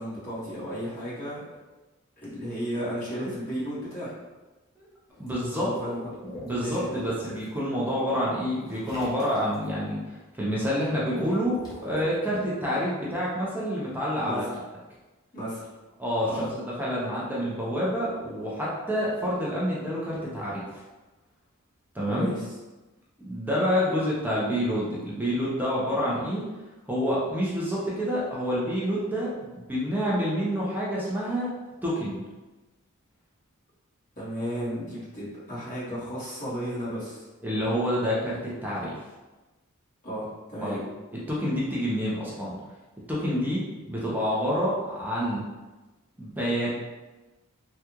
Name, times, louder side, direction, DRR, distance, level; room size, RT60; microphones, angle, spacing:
voice 1, 0.0-1.4 2.2-4.1 5.5-6.1 6.6-6.8 14.2-14.5 15.3-15.7 16.3-16.5 22.0-22.5 34.2-37.3 40.0-40.8, equal, 35° left, -11 dB, 1.5 m, -33 dB
Water / Liquid, 5.1-7.6 8.6-9.7 11.2-12.1, left 1 dB, 20° left, 0.8 m, -45 dB
voice 2, 5.2-5.7 6.2-10.0 10.4-14.5 16.0-20.6 21.9-22.3 23.2-26.4 26.9-31.5 31.8-32.2 37.4-38.9 40.6-40.8 41.3-42.5 43.1-45.4 46.2-46.7, equal, 10° right, -7 dB, 0.6 m, -28 dB
3.5 x 2.4 x 2.9 m, 1.2 s
head